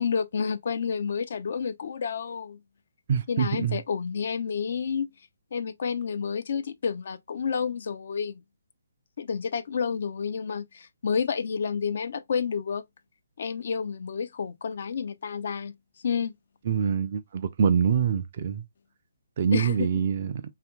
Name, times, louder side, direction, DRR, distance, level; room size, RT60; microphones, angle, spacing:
voice 1, 0.0-2.6 3.3-5.1 5.5-8.4 9.2-12.8 13.4-15.7 16.0-16.3 19.5-19.9, left 6 dB, 55° left, 0.3 m, -30 dB
voice 2, 3.1-3.8 16.7-18.6 19.4-20.3, right 7 dB, 45° right, 0.4 m, -25 dB
2.7 x 2.5 x 2.2 m
figure-of-eight pair, 140°, 0 cm